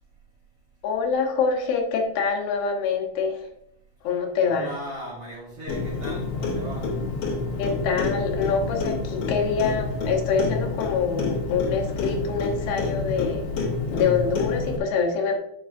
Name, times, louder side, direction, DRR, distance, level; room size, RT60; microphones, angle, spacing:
voice 1, 0.8-3.5 4.0-4.7 7.6-13.5 13.9-15.4, left 5 dB, 85° left, 2 dB, 3.0 m, -25 dB
voice 2, 4.4-6.9, right 1 dB, 55° right, -5 dB, 1.7 m, -37 dB
Clock, 5.7-14.8, left 3 dB, 70° left, 1.5 m, -28 dB
9.0 x 5.5 x 2.6 m, 0.76 s
omnidirectional pair, 4.5 m